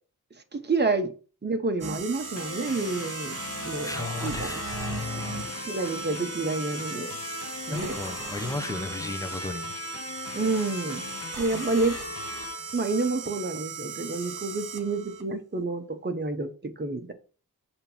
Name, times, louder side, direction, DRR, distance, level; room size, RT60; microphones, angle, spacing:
voice 1, 0.5-1.1 1.4-3.9 4.2-4.6 5.7-7.1 7.7-8.0 10.3-11.0 11.4-11.9 12.7-17.1, right 3 dB, 30° right, 1.0 m, -29 dB
sound 1, 1.8-15.2, right 5 dB, 60° right, 1.2 m, -38 dB
sound 2, 2.4-13.6, left 5 dB, 40° left, 0.7 m, -39 dB
voice 2, 3.8-5.5 7.7-9.7, left 3 dB, 10° left, 0.8 m, -35 dB
6.6 x 3.0 x 5.4 m
wide cardioid pair, 95°, 36 cm